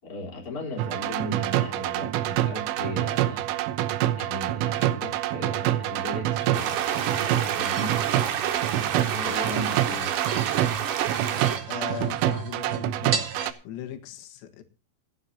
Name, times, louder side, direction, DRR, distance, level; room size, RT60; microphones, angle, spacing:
voice 1, 0.0-3.5 3.9-8.0 8.7-10.2, left 1 dB, 20° left, 3.9 m, -37 dB
sound 1, 0.8-13.5, right 13 dB, 80° right, 3.5 m, -27 dB
sound 2, 6.5-11.6, right 8 dB, 65° right, 3.5 m, -29 dB
sound 3, 7.6-13.5, right 5 dB, 50° right, 2.0 m, -37 dB
voice 2, 11.7-13.3 13.7-14.6, left 10 dB, 85° left, 4.3 m, -38 dB
27.0 x 9.6 x 2.8 m
omnidirectional pair, 5.8 m